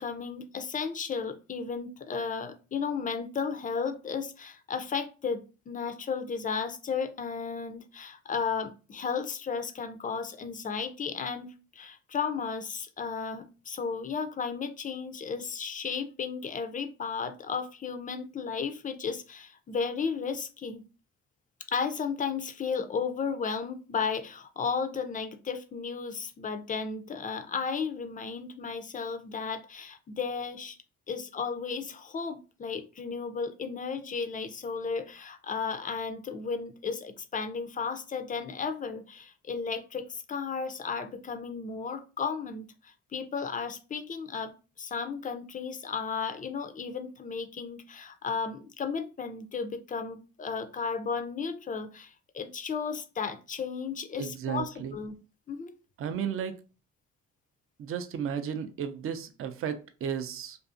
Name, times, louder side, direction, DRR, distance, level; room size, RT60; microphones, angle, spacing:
voice 1, 0.0-20.8 21.7-30.8 31.1-44.5 44.8-55.1 55.5-55.7, left 5 dB, 30° left, 0.4 m, -34 dB
voice 2, 54.2-55.0 56.0-56.5 57.8-60.6, right 8 dB, 45° right, 0.4 m, -34 dB
2.5 x 2.4 x 2.4 m
cardioid pair, 90°, 30 cm